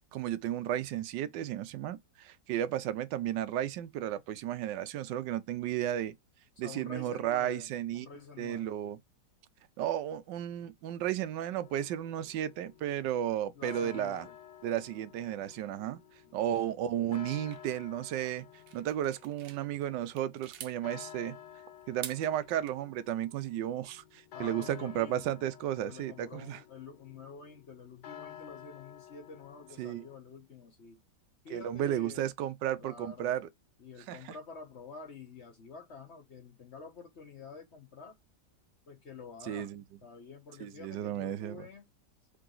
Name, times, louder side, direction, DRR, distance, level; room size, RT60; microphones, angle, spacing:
voice 1, 0.1-6.1 6.6-8.1 8.4-9.0 9.8-14.3 14.6-16.0 16.3-18.4 18.7-21.3 21.9-26.6 29.8-30.1 31.5-33.5 34.1-34.4 39.4-39.8 40.6-41.7, right 11 dB, 85° right, 1.3 m, -33 dB
voice 2, 6.6-8.8 13.5-14.2 16.3-16.4 24.3-31.0 31.4-32.3 32.8-33.3 33.8-38.2 38.9-39.7 40.0-41.8, left 5 dB, 45° left, 1.1 m, -48 dB
sound 1, 11.5-30.2, left 10 dB, 75° left, 1.2 m, -52 dB
sound 2, 17.3-19.6 20.0-20.8 21.8-22.7, right 9 dB, 70° right, 1.1 m, -47 dB
3.9 x 3.3 x 3.8 m
omnidirectional pair, 1.9 m